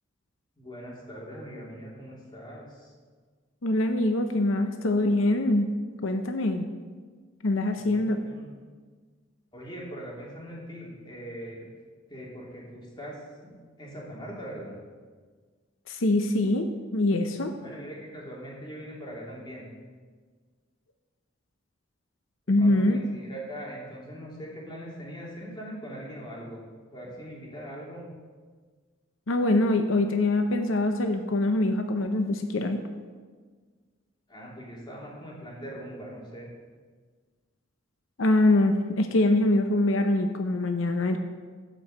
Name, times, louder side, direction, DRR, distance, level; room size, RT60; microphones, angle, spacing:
voice 1, 0.6-2.9 7.8-8.4 9.5-11.7 12.1-14.8 17.6-19.6 22.5-26.6 26.9-28.0 34.3-36.5, equal, 25° left, -4 dB, 2.9 m, -41 dB
voice 2, 3.6-5.7 6.0-6.7 7.4-8.2 15.9-17.6 22.5-23.0 29.3-32.8 38.2-41.2, left 2 dB, 85° left, 6 dB, 0.8 m, -24 dB
12.5 x 5.4 x 7.7 m, 1.5 s
head